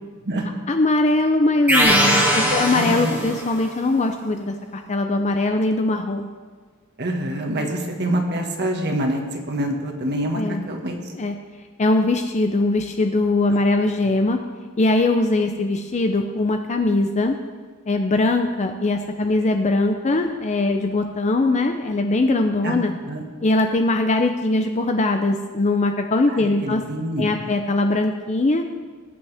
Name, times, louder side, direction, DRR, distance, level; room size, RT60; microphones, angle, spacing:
voice 1, 0.7-6.3 10.3-10.6 11.2-11.3 11.8-14.4 14.8-17.4 17.9-22.9 23.4-26.8 27.2-28.6, left 2 dB, 35° left, 5 dB, 0.6 m, -21 dB
sound 1, 1.7-3.6, equal, 10° right, 2.4 m, -20 dB
voice 2, 2.4-3.2 7.0-11.0 22.6-22.7 23.0-23.2 26.3-27.6, right 1 dB, 55° right, 2 dB, 1.7 m, -26 dB
19.5 x 8.2 x 3.5 m, 1.5 s
head